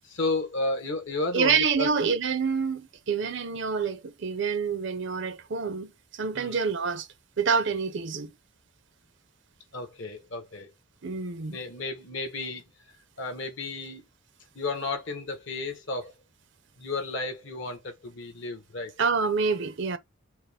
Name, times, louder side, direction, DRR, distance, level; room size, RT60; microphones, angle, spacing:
voice 1, 0.0-2.1 6.3-6.6 9.7-10.7 11.5-12.6 13.2-14.0 14.5-16.1 16.8-18.9, left 2 dB, 55° left, 1.1 m, -32 dB
voice 2, 1.3-7.1 7.4-8.3 11.0-11.6 19.0-20.0, right 5 dB, 55° right, 0.6 m, -27 dB
4.5 x 2.1 x 3.3 m
head